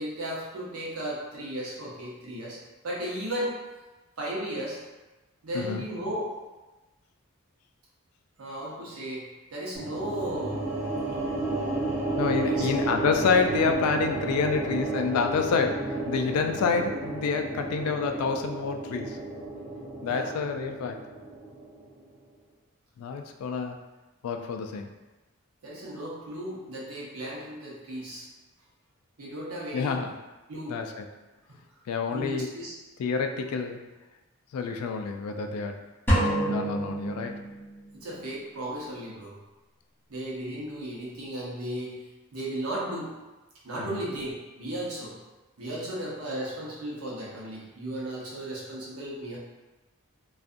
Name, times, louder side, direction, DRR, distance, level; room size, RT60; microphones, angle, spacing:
voice 1, 0.0-2.6 2.8-3.6 4.2-4.8 5.4-6.3 8.4-10.6 12.3-12.7 20.1-20.3 25.6-28.3 29.2-30.0 30.5-30.8 31.5-31.6 32.1-32.7 37.9-39.4 40.1-42.0 42.3-43.2 43.6-45.1 45.6-49.4, right 1 dB, 85° right, -5 dB, 0.8 m, -35 dB
sound 1, 9.7-22.0, right 2 dB, 30° right, 0.6 m, -32 dB
voice 2, 12.2-19.2 20.0-21.0 23.0-23.8 24.2-24.9 29.7-30.1 30.7-31.0 31.9-32.5 33.0-33.8 34.5-35.8 36.5-37.4 43.8-44.0, left 5 dB, 85° left, 10 dB, 0.3 m, -28 dB
sound 2, 36.1-37.9, right 1 dB, 10° left, 0.6 m, -27 dB
2.5 x 2.3 x 2.5 m, 1.1 s
head